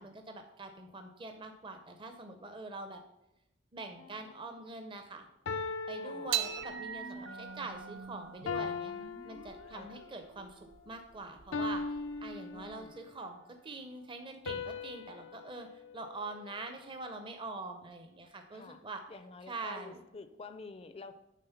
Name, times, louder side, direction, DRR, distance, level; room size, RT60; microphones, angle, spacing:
voice 1, 0.0-3.0 3.7-5.3 5.9-8.9 9.2-11.8 12.2-19.0 19.5-20.0, right 3 dB, 25° right, 5 dB, 0.6 m, -44 dB
sound 1, 4.0-4.3 5.5-7.1 8.5-10.1 11.5-13.1 14.5-16.9, left 4 dB, 85° left, 0.5 m, -40 dB
voice 2, 6.0-6.3 7.1-7.7 9.7-10.0 12.5-13.0 18.5-18.8 19.1-21.1, left 3 dB, 30° left, 10 dB, 0.4 m, -49 dB
sound 2, 6.3-12.9, right 9 dB, 85° right, 0.7 m, -42 dB
9.2 x 3.7 x 5.7 m, 0.91 s
head